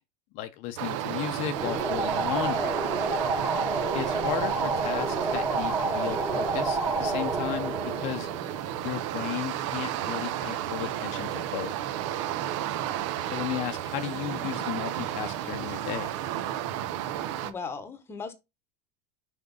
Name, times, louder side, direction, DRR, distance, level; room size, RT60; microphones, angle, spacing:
voice 1, 0.3-2.8 3.9-8.3 8.8-11.8 13.2-16.1, left 13 dB, 45° left, 0.7 m, -35 dB
sound 1, 0.8-17.5, right 11 dB, 65° right, 1.0 m, -32 dB
sound 2, 1.6-8.9, right 3 dB, 15° right, 1.5 m, -29 dB
voice 2, 3.0-3.3 17.4-18.3, left 5 dB, 15° left, 1.1 m, -38 dB
6.1 x 5.3 x 5.3 m
supercardioid pair, 165°, 17 cm